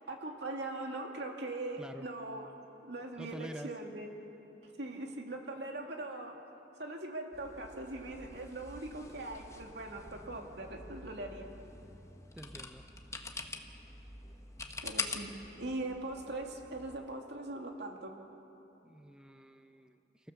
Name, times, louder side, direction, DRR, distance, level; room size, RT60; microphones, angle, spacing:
voice 1, 0.1-2.5 2.8-4.2 4.6-6.4 6.8-11.5 14.8-18.2, right 2 dB, 65° right, 2 dB, 2.4 m, -41 dB
voice 2, 1.8-2.1 3.2-3.7 12.3-12.8 18.8-20.3, right 1 dB, 5° right, 6 dB, 0.6 m, -47 dB
sound 1, 7.3-17.0, left 3 dB, 15° left, 1.2 m, -45 dB
29.5 x 15.0 x 7.0 m, 3.0 s
head